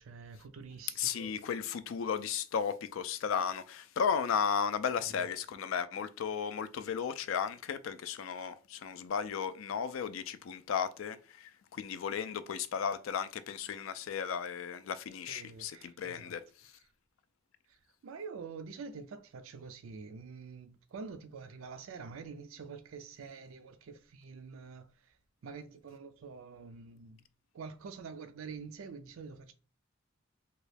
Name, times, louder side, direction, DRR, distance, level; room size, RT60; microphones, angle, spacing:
voice 1, 0.0-1.4 5.0-5.3 15.3-16.3 17.7-27.2 27.5-29.5, right 5 dB, 75° right, 0.4 m, -47 dB
voice 2, 1.0-16.7, left 7 dB, 70° left, 0.4 m, -35 dB
3.0 x 2.3 x 3.2 m
head